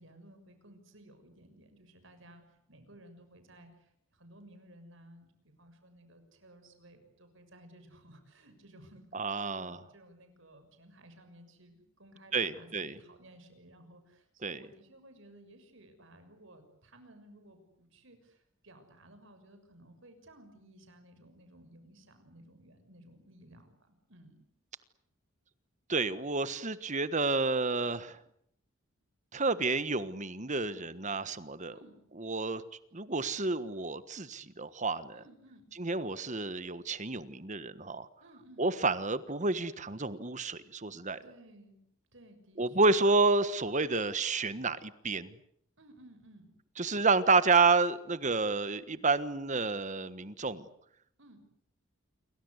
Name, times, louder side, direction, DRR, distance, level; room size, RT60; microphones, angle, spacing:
voice 1, 0.0-9.1 9.4-24.4 30.6-30.9 31.7-32.0 35.1-35.7 38.2-38.6 41.2-41.8 42.1-43.1 45.8-46.5 51.2-51.4, right 1 dB, 60° right, 8 dB, 6.5 m, -57 dB
voice 2, 9.1-9.8 12.3-12.9 14.4-14.6 25.9-28.2 29.3-31.7 32.2-32.6 32.9-35.2 35.8-38.1 38.6-41.2 42.6-45.3 46.8-50.6, right 3 dB, 35° right, 14 dB, 1.4 m, -30 dB
29.0 x 24.0 x 8.2 m, 0.69 s
head